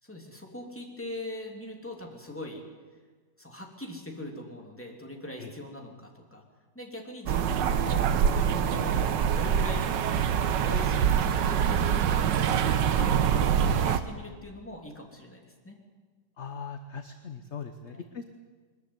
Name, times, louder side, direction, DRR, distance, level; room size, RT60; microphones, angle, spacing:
voice 1, 0.0-2.6 3.4-6.4 6.7-8.1 8.5-9.1 9.3-10.0 10.6-12.3 12.9-15.7 17.9-18.1, left 1 dB, 5° left, 0 dB, 3.1 m, -41 dB
sound 1, 7.3-14.0, right 8 dB, 85° right, 1.6 m, -25 dB
voice 2, 16.4-18.2, left 6 dB, 45° left, 7 dB, 1.1 m, -40 dB
22.5 x 13.5 x 9.6 m, 1.5 s
omnidirectional pair, 1.9 m